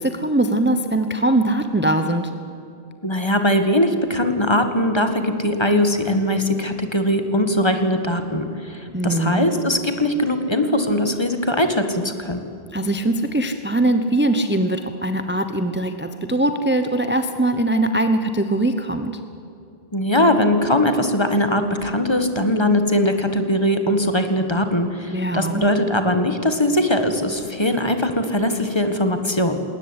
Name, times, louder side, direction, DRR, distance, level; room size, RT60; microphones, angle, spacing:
voice 1, 0.0-2.3 8.9-9.5 12.7-19.1 25.1-25.6, right 1 dB, 10° right, 8 dB, 0.9 m, -21 dB
voice 2, 3.0-12.4 19.9-29.6, left 1 dB, 25° left, 7 dB, 1.8 m, -20 dB
20.5 x 18.5 x 9.8 m, 2.7 s
omnidirectional pair, 1.1 m